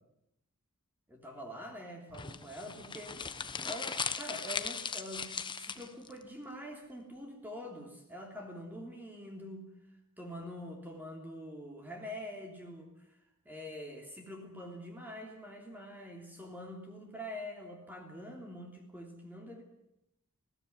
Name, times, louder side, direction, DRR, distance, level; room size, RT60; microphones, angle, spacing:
voice 1, 1.1-9.7 10.2-12.9 13.5-19.6, equal, 10° right, 1 dB, 3.2 m, -45 dB
sound 1, 2.1-6.1, left 5 dB, 20° left, 1.1 m, -38 dB
20.0 x 17.0 x 9.6 m, 0.82 s
head